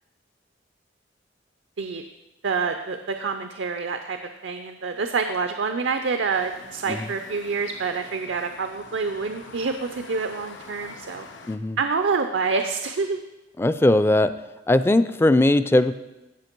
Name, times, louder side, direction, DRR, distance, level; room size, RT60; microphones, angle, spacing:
voice 1, 2.4-11.3 11.8-13.2, right 4 dB, 80° right, 7 dB, 0.6 m, -27 dB
sound 1, 6.3-11.6, left 3 dB, 90° left, 0.9 m, -45 dB
voice 2, 11.5-11.8 13.6-14.3 14.7-15.9, left 1 dB, 15° left, 13 dB, 0.3 m, -19 dB
16.0 x 5.8 x 4.5 m, 1.0 s
head